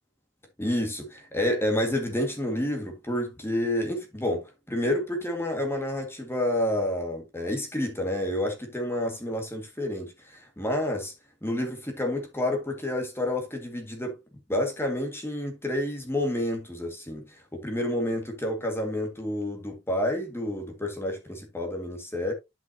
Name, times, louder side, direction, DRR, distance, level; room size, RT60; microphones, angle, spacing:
voice 1, 0.6-11.1 11.4-14.2 14.5-22.3, left 1 dB, 15° left, 1.8 m, -29 dB
11.5 x 5.8 x 2.7 m
head